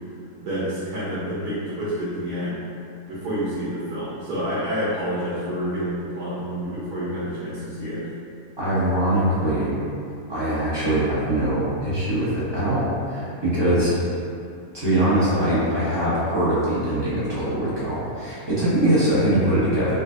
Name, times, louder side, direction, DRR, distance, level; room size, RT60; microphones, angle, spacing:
voice 1, 0.4-2.6 3.1-8.1, equal, 80° right, -9 dB, 1.2 m, -28 dB
voice 2, 8.6-9.7 10.3-14.0 14.7-20.0, right 1 dB, 25° right, -12 dB, 0.6 m, -22 dB
3.7 x 2.4 x 2.5 m, 2.6 s
omnidirectional pair, 1.7 m